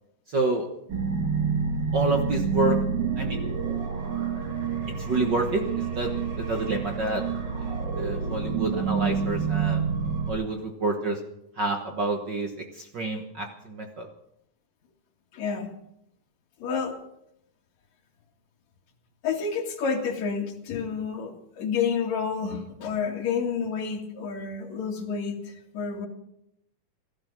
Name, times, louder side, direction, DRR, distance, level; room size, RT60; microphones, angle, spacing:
voice 1, 0.3-0.7 1.9-2.8 3.2-3.4 4.9-7.2 7.6-9.8 10.3-11.2 11.6-14.1, right 2 dB, 60° right, 3 dB, 1.1 m, -28 dB
sound 1, 0.9-10.3, right 6 dB, 40° right, 1.9 m, -28 dB
voice 2, 15.3-15.7 16.6-17.0 19.2-26.1, left 6 dB, 55° left, 1 dB, 3.2 m, -29 dB
17.0 x 13.0 x 6.0 m, 0.80 s
omnidirectional pair, 3.9 m